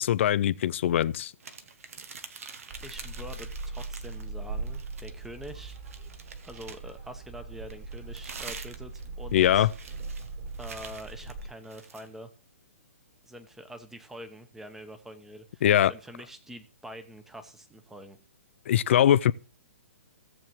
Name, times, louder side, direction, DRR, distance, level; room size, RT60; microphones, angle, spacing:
voice 1, 0.0-1.3 9.3-9.7 15.6-15.9 18.7-19.3, left 11 dB, 55° left, 0.5 m, -22 dB
sound 1, 1.4-4.3 4.6-7.0 7.7-12.1, right 5 dB, 70° right, 1.1 m, -46 dB
sound 2, 2.7-11.5, right 3 dB, 45° right, 4.3 m, -40 dB
voice 2, 2.8-5.8 6.4-9.7 10.6-12.3 13.2-18.2, equal, 5° right, 0.9 m, -45 dB
16.5 x 7.3 x 3.1 m
hypercardioid pair, 135°, 8 cm